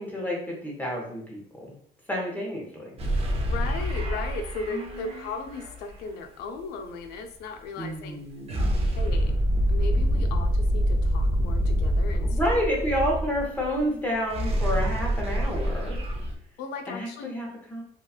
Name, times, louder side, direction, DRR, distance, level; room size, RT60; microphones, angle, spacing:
voice 1, 0.0-1.7 2.1-2.9 4.7-5.2 7.8-8.7 12.1-16.0 16.9-17.8, equal, 10° left, -2 dB, 0.8 m, -30 dB
sound 1, 3.0-5.9 8.5-13.9 14.1-16.3, equal, 35° right, 0.6 m, -26 dB
voice 2, 3.5-8.2 8.9-9.4 9.7-12.6 16.6-17.3, left 4 dB, 85° left, 6 dB, 0.4 m, -36 dB
2.8 x 2.3 x 2.3 m, 0.62 s
cardioid pair, 110°, 17 cm